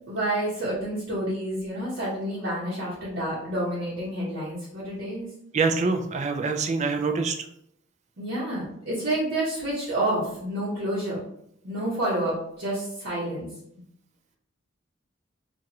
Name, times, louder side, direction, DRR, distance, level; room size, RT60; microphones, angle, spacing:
voice 1, 0.1-5.3 8.2-11.2 11.6-13.5, right 1 dB, 70° right, -9 dB, 1.2 m, -29 dB
voice 2, 5.5-7.4, right 4 dB, 35° right, 6 dB, 0.4 m, -25 dB
4.5 x 2.5 x 2.8 m, 0.72 s
head